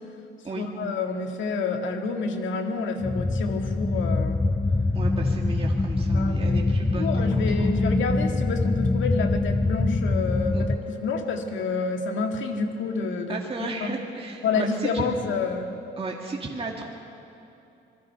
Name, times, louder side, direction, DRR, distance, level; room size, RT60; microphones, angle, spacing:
voice 1, 0.6-4.4 6.1-6.7 7.0-14.0 14.4-15.8, left 4 dB, 75° left, 4 dB, 2.0 m, -29 dB
sound 1, 3.0-10.8, left 2 dB, 15° left, 0.7 m, -24 dB
voice 2, 4.9-7.7 10.5-10.7 13.3-15.1 16.0-16.9, right 3 dB, 30° right, -1 dB, 1.9 m, -34 dB
26.0 x 21.0 x 5.7 m, 2.8 s
cardioid pair, 90°, 20 cm